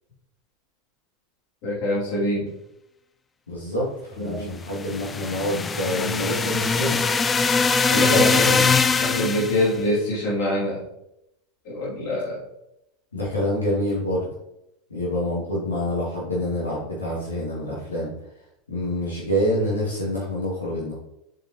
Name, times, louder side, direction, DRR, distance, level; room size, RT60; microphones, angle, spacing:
voice 1, 1.6-2.5 4.2-4.5 8.1-8.5 9.0-10.8 11.7-12.4, left 1 dB, 55° left, -5 dB, 2.6 m, -25 dB
voice 2, 3.5-7.0 7.9-8.7 13.1-14.3 14.9-18.1 18.7-20.9, left 1 dB, 80° left, -7 dB, 2.3 m, -26 dB
sound 1, 4.7-9.7, left 5 dB, 20° left, 0.4 m, -22 dB
7.3 x 5.2 x 2.9 m, 0.83 s
figure-of-eight pair, 80°, 0 cm